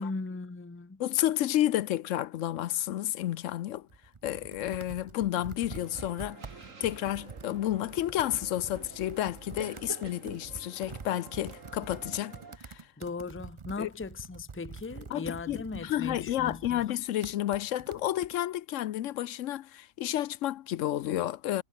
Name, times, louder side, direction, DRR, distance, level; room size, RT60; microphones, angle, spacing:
voice 1, 0.0-1.0 13.0-16.9, left 3 dB, 15° left, 0.6 m, -38 dB
voice 2, 1.0-3.9 4.2-6.4 6.8-12.9 13.8-13.9 15.1-21.6, left 13 dB, 75° left, 0.9 m, -31 dB
Computer keyboard, 3.7-18.4, right 4 dB, 30° right, 0.7 m, -47 dB
sound 1, 5.7-12.6, right 4 dB, 75° right, 2.7 m, -49 dB
omnidirectional pair, 1.4 m